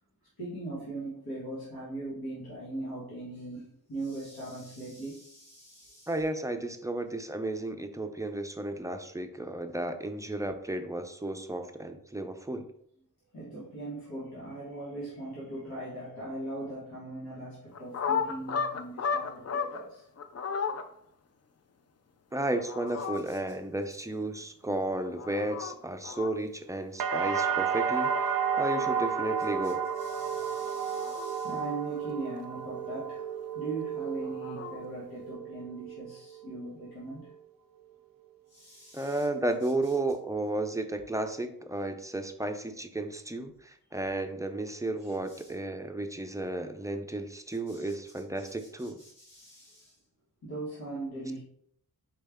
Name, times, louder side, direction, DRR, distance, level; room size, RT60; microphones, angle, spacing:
voice 1, 0.4-6.2 13.3-20.1 23.2-23.4 29.6-37.3 38.5-39.3 39.6-39.9 45.0-45.5 47.7-50.0 50.4-51.4, right 2 dB, 85° left, -8 dB, 1.6 m, -40 dB
voice 2, 6.1-12.7 22.3-29.8 38.9-49.0, right 2 dB, 10° right, 7 dB, 0.4 m, -33 dB
sound 1, 17.7-19.8 20.2-20.8 22.4-23.2 24.9-25.7 26.0-26.3 28.4-29.1 30.6-31.6 34.0-34.8, left 6 dB, 45° left, 0.5 m, -34 dB
sound 2, 27.0-34.9 35.3-35.9, right 7 dB, 65° right, 0.5 m, -31 dB
4.5 x 3.2 x 3.5 m, 0.67 s
wide cardioid pair, 80°, 36 cm